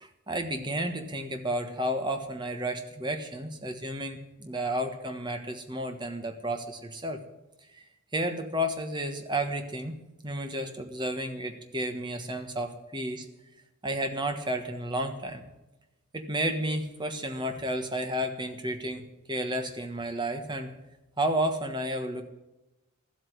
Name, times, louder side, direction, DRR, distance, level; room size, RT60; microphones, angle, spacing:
voice 1, 0.0-7.2 7.7-7.8 8.1-9.9 10.2-13.3 13.8-15.4 16.1-19.0 19.3-20.7 21.2-22.2, right 1 dB, 20° right, 7 dB, 1.3 m, -32 dB
13.5 x 8.1 x 9.2 m, 1.0 s
head